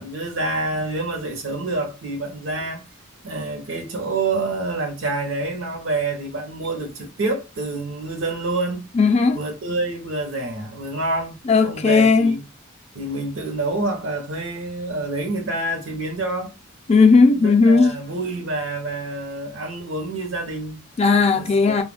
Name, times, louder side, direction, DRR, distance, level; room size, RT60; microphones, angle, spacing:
voice 1, 0.0-2.8 3.2-8.9 9.3-11.4 11.6-12.4 12.9-16.5 17.3-20.8 21.3-21.8, right 2 dB, 75° right, 0.8 m, -27 dB
voice 2, 9.0-9.4 11.5-12.3 16.9-17.9 21.0-21.8, left 4 dB, 30° left, 0.4 m, -15 dB
2.3 x 2.2 x 3.2 m
head